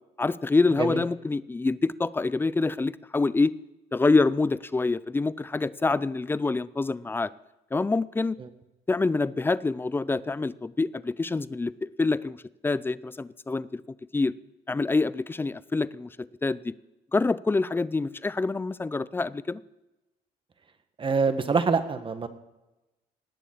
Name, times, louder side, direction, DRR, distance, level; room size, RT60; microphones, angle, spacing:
voice 1, 0.2-3.5 3.9-7.3 7.7-8.4 8.9-12.4 12.6-13.8 14.1-14.3 14.7-16.1 16.4-16.7 17.1-19.6, left 3 dB, 15° left, 18 dB, 0.5 m, -26 dB
voice 2, 21.0-22.3, right 5 dB, 30° right, 9 dB, 1.5 m, -25 dB
18.5 x 7.1 x 8.7 m, 1.0 s
cardioid pair, 110°, 17 cm